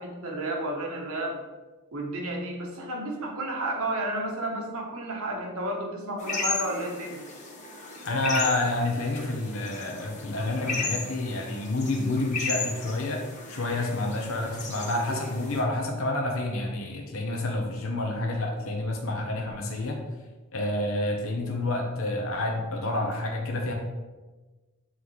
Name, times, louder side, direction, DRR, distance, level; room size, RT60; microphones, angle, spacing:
voice 1, 0.0-1.4 1.9-7.2, right 1 dB, 75° right, 0 dB, 1.1 m, -32 dB
sound 1, 6.2-15.6, left 3 dB, 35° left, 1.0 m, -35 dB
voice 2, 8.0-13.2 13.5-20.0 20.5-23.7, left 2 dB, 70° left, 1 dB, 0.8 m, -29 dB
7.6 x 3.9 x 3.2 m, 1.2 s
head